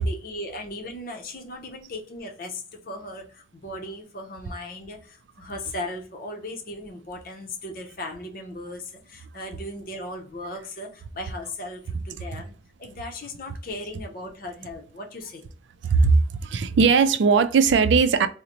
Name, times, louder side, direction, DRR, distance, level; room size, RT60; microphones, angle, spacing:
voice 1, 0.0-12.5 12.8-15.5, left 1 dB, 50° left, 0.7 m, -37 dB
voice 2, 15.8-18.3, right 5 dB, 85° right, 0.4 m, -19 dB
3.8 x 2.1 x 2.9 m
head